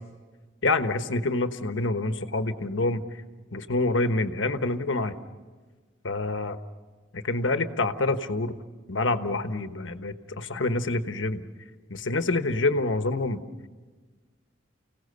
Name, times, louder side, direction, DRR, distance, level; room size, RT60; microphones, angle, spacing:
voice 1, 0.6-3.0 3.5-5.1 6.0-6.5 7.1-8.6 8.9-11.4 11.9-13.4, left 2 dB, 85° left, 9 dB, 1.2 m, -27 dB
30.0 x 17.5 x 6.8 m, 1.4 s
head